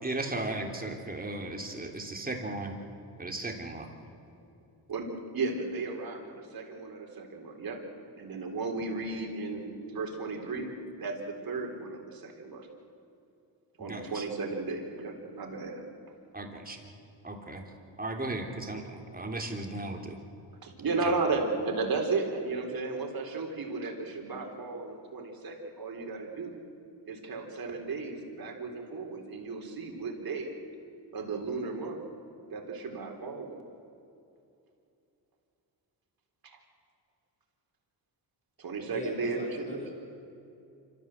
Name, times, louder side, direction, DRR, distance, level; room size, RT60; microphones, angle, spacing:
voice 1, 0.0-2.7 3.2-3.9 13.9-14.2 16.3-16.8 17.2-17.6 18.0-20.2, right 2 dB, 20° right, 2 dB, 3.5 m, -36 dB
voice 2, 4.9-7.8 8.1-10.7 11.0-12.7 13.8-15.8 20.6-26.5 27.1-30.5 31.1-32.0 32.5-33.6 36.4-36.6 38.6-39.8, right 3 dB, 55° right, 2 dB, 4.0 m, -34 dB
voice 3, 38.9-39.9, left 1 dB, 15° left, 1 dB, 6.7 m, -41 dB
26.0 x 14.0 x 7.9 m, 2.7 s
cardioid pair, 70°, 43 cm